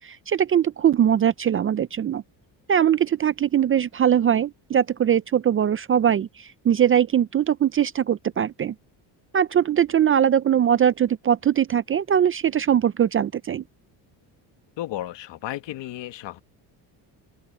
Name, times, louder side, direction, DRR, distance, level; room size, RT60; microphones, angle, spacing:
voice 1, 0.0-2.2 2.7-8.7 9.3-13.6, right 9 dB, 30° right, 0.4 m, -21 dB
voice 2, 14.8-16.4, left 14 dB, 70° left, 1.5 m, -33 dB
open air
cardioid pair, 125°, 45 cm